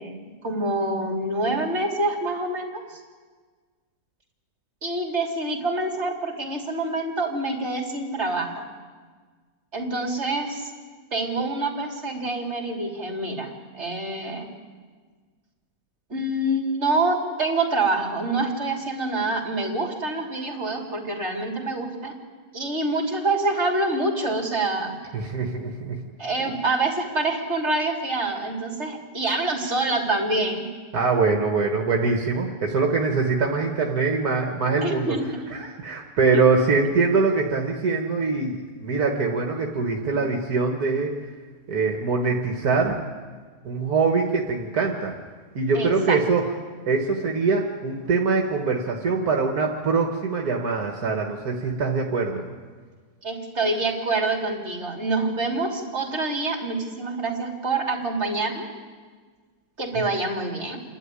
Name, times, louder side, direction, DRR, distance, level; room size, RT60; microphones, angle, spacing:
voice 1, 0.0-3.0 4.8-8.7 9.7-10.7 11.1-14.5 16.1-22.2 22.5-24.9 26.2-30.7 34.8-35.3 36.3-36.4 45.7-46.2 53.2-58.7 59.8-60.8, right 2 dB, 45° right, 2 dB, 3.3 m, -26 dB
voice 2, 25.1-26.0 30.9-35.1 35.5-41.1 41.7-43.0 43.6-45.1 45.6-46.4 46.9-52.4, right 4 dB, 75° right, 1 dB, 2.0 m, -23 dB
28.5 x 12.0 x 9.7 m, 1.5 s
omnidirectional pair, 1.7 m